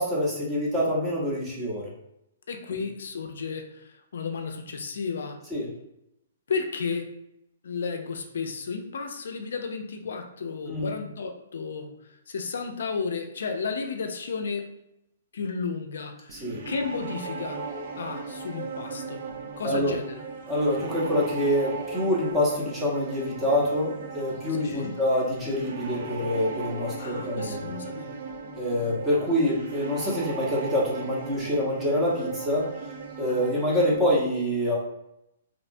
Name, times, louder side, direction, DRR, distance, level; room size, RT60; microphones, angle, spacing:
voice 1, 0.0-1.9 5.5-5.7 10.7-10.9 16.3-16.6 19.6-20.0 20.5-27.7 28.6-32.7 33.2-34.8, left 1 dB, 10° right, -5 dB, 0.7 m, -26 dB
voice 2, 2.5-3.8 4.1-5.4 6.5-7.1 7.6-11.9 12.3-14.7 15.3-17.6 17.9-20.2 24.6-25.0 27.0-28.2, left 5 dB, 75° left, 5 dB, 0.3 m, -33 dB
sound 1, 16.3-34.0, right 4 dB, 50° right, 0.4 m, -37 dB
2.8 x 2.1 x 2.6 m, 0.82 s
hypercardioid pair, 150°, 0 cm